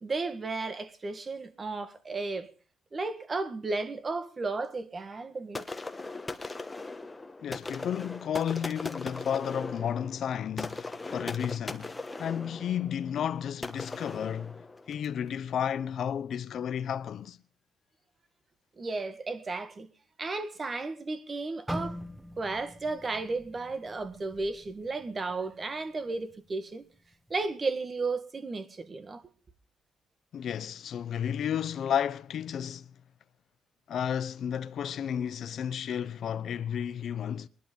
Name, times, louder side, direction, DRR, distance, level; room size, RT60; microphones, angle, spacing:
voice 1, 0.0-2.5 2.9-5.7 18.8-19.9 20.2-22.0 22.4-26.9 27.3-29.2, right 3 dB, 35° right, 1.7 m, -34 dB
sound 1, 5.5-15.2, left 3 dB, 20° left, 1.3 m, -39 dB
voice 2, 7.4-11.9 12.2-14.6 14.9-17.4 30.3-32.9 33.9-37.5, left 9 dB, 65° left, 0.7 m, -32 dB
sound 2, 21.7-25.7 26.1-26.3 27.0-27.3, equal, 5° right, 1.1 m, -42 dB
20.0 x 11.5 x 5.3 m
cardioid pair, 90°, 0 cm